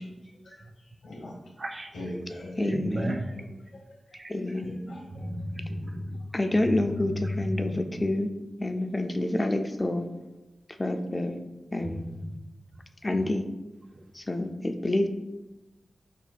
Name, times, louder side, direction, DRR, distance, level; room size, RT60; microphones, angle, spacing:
voice 1, 0.3-1.4 1.9-2.6 3.3-3.6 4.1-5.3, left 1 dB, 80° left, -2 dB, 1.2 m, -42 dB
voice 2, 1.6-1.9 2.6-3.3 4.1-4.3 5.2-6.2 7.4-7.9 12.2-12.5, right 1 dB, 40° right, 5 dB, 0.4 m, -33 dB
voice 3, 2.6-3.2 4.3-4.7 6.3-8.3 8.6-10.1 10.8-11.4 11.7-12.0 13.0-13.4 14.1-15.1, left 1 dB, 25° left, 6 dB, 0.4 m, -28 dB
5.9 x 2.7 x 2.3 m, 1.1 s
cardioid pair, 70°, 0 cm